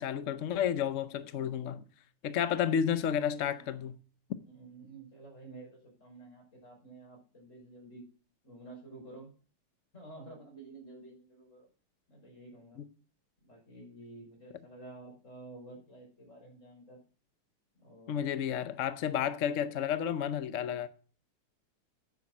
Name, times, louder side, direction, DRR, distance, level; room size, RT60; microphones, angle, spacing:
voice 1, 0.0-1.8 2.2-4.0 18.1-20.9, left 8 dB, 80° left, 0.6 m, -31 dB
voice 2, 4.5-8.0 8.4-9.3 9.9-11.7 12.1-12.8 13.4-17.0 17.7-18.3, right 2 dB, 35° left, 5.7 m, -51 dB
9.5 x 7.5 x 6.0 m
omnidirectional pair, 2.3 m